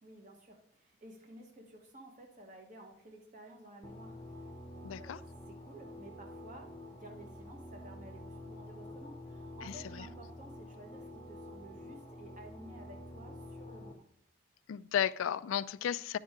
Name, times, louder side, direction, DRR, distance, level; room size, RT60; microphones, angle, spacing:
voice 1, 0.0-5.2 5.5-14.0, right 1 dB, 40° right, 1.2 m, -53 dB
sound 1, 3.8-13.9, left 1 dB, 20° left, 0.6 m, -48 dB
voice 2, 4.8-5.2 9.6-10.0 14.7-16.2, left 9 dB, 80° left, 0.3 m, -34 dB
9.7 x 5.4 x 3.6 m
head